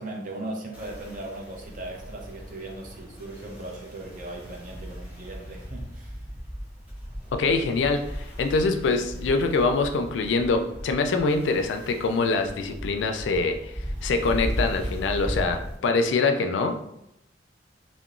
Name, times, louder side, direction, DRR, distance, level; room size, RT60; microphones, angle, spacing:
voice 1, 0.0-6.2, right 2 dB, 50° right, 0 dB, 0.5 m, -38 dB
sound 1, 0.7-15.8, equal, 10° right, 0.7 m, -37 dB
voice 2, 7.3-13.7 14.0-16.8, left 3 dB, 85° left, 6 dB, 0.3 m, -24 dB
2.9 x 2.0 x 2.4 m, 0.84 s
head